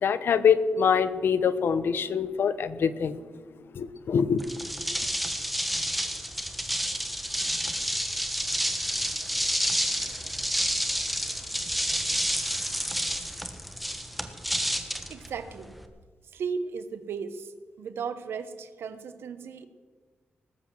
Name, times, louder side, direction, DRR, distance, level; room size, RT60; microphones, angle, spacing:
voice 1, 0.0-3.2 3.8-4.4, left 7 dB, 70° left, 14 dB, 0.8 m, -24 dB
sound 1, 4.4-15.9, equal, ahead, 1.2 m, -29 dB
voice 2, 15.1-15.8 16.2-19.7, right 5 dB, 90° right, 11 dB, 1.1 m, -36 dB
19.0 x 8.0 x 7.5 m, 1.5 s
wide cardioid pair, 135°, 4 cm